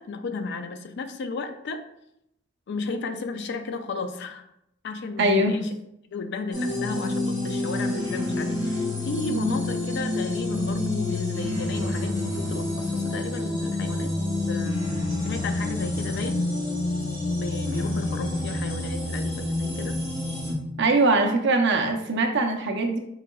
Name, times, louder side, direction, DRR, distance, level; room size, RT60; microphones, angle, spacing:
voice 1, 0.0-1.8 2.7-4.4 4.8-5.7 6.1-14.1 14.5-16.4 17.4-20.0, left 3 dB, 55° left, 8 dB, 0.4 m, -34 dB
voice 2, 5.2-5.6 20.8-23.0, right 2 dB, 55° right, 3 dB, 0.6 m, -22 dB
sound 1, 6.5-20.5, left 2 dB, 35° left, 1.4 m, -28 dB
4.7 x 3.7 x 2.3 m, 0.80 s
head